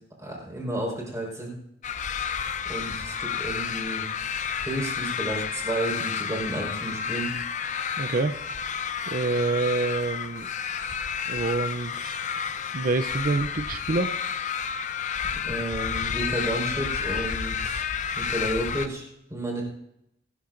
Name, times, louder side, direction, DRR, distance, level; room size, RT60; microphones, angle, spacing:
voice 1, 0.2-1.5 2.7-4.1 4.6-7.3 10.8-10.9 15.4-17.8 18.2-19.6, right 1 dB, 20° right, -2 dB, 4.6 m, -32 dB
sound 1, 1.8-18.9, left 7 dB, 40° left, 0.6 m, -31 dB
voice 2, 8.0-8.4 9.1-10.5 11.3-12.2 12.7-14.1, right 3 dB, 50° right, 11 dB, 0.5 m, -27 dB
28.0 x 13.0 x 2.6 m, 0.78 s
head